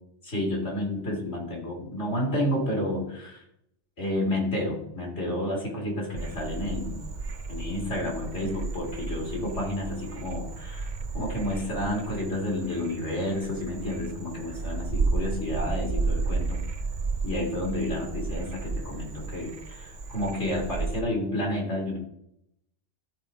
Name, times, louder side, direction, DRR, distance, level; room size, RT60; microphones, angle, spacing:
voice 1, 0.2-3.4 4.0-7.0 7.5-10.9 11.1-16.6 17.2-22.0, left 1 dB, 85° left, -3 dB, 3.4 m, -30 dB
Frog, 6.2-21.0, right 3 dB, 45° right, 0.8 m, -33 dB
13.0 x 4.8 x 4.3 m, 0.77 s
omnidirectional pair, 1.2 m